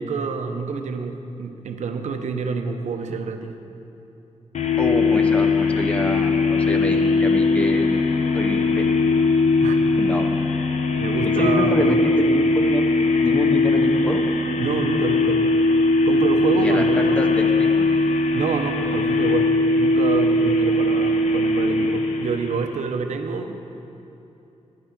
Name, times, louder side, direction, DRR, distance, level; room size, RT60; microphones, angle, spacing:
voice 1, 0.0-3.5 9.6-9.8 11.0-12.0 14.6-15.4 16.0-17.2 18.3-23.6, right 5 dB, 80° right, 6 dB, 0.7 m, -27 dB
sound 1, 4.5-22.8, left 3 dB, 80° left, 0.8 m, -20 dB
voice 2, 4.8-7.9 8.3-8.9 10.0-10.3 11.4-12.8 13.2-14.2 16.6-17.9, equal, 10° left, 4 dB, 0.7 m, -26 dB
10.0 x 9.3 x 6.0 m, 2.9 s
wide cardioid pair, 155°, 12 cm